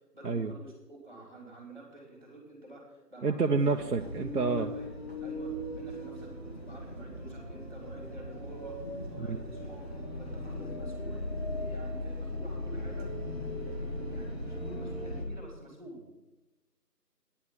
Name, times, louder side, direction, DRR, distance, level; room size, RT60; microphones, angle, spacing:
voice 1, 0.1-3.7 4.3-4.9 5.2-8.8 9.1-9.9 10.1-11.3 11.6-16.1, right 1 dB, 30° right, 0 dB, 3.3 m, -49 dB
voice 2, 3.2-4.7 9.2-9.4, right 4 dB, 65° right, 3 dB, 0.7 m, -28 dB
sound 1, 3.6-15.2, left 1 dB, 40° left, 1.6 m, -38 dB
9.8 x 7.2 x 7.2 m, 1.0 s
figure-of-eight pair, 175°, 48 cm